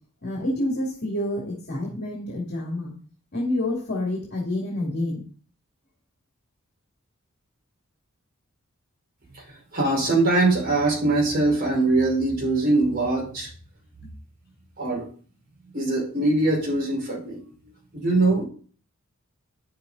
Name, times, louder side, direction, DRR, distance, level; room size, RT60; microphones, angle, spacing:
voice 1, 0.2-2.9 3.3-5.2 14.0-14.1, left 1 dB, 50° left, -2 dB, 2.6 m, -28 dB
voice 2, 9.7-13.5 14.8-15.1 15.7-17.4 17.9-18.4, right 2 dB, 45° right, -3 dB, 5.2 m, -22 dB
10.0 x 6.8 x 4.1 m, 0.42 s
head